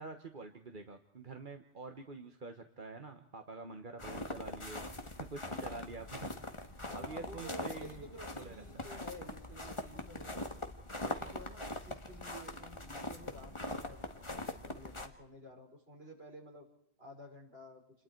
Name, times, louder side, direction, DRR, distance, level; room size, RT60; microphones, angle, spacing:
voice 1, 0.0-6.6 6.9-8.1 8.3-8.8, right 3 dB, 50° right, 6 dB, 1.5 m, -47 dB
sound 1, 4.0-15.1, left 1 dB, 30° left, 1.9 m, -42 dB
voice 2, 6.8-10.4 11.0-16.7 17.0-17.8, equal, 70° right, 0 dB, 5.9 m, -52 dB
29.5 x 22.0 x 4.6 m, 0.74 s
omnidirectional pair, 1.1 m